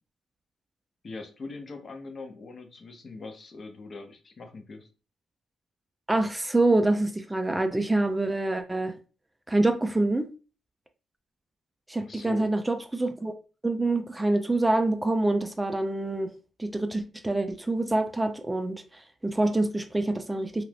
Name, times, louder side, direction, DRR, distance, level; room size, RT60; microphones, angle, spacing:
voice 1, 1.0-4.9 12.0-12.5, left 3 dB, 45° left, 0.7 m, -42 dB
voice 2, 6.1-9.0 9.5-10.3 11.9-13.4 13.6-16.3 16.6-20.6, right 2 dB, 15° right, 0.4 m, -26 dB
2.6 x 2.3 x 3.3 m
cardioid pair, 75°, 0 cm